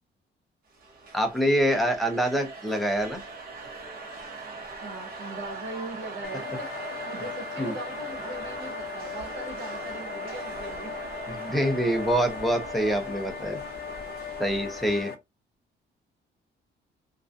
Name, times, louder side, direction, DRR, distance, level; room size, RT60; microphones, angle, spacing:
sound 1, 0.7-15.0, right 3 dB, 50° right, 0.8 m, -41 dB
voice 1, 1.1-3.2 7.6-7.7 11.3-13.6 14.4-15.1, equal, ahead, 0.4 m, -25 dB
voice 2, 4.8-6.7 7.0-10.9, right 2 dB, 70° right, 1.3 m, -39 dB
sound 2, 6.2-15.1, left 6 dB, 55° left, 0.5 m, -38 dB
2.4 x 2.1 x 2.5 m
cardioid pair, 180°, 20 cm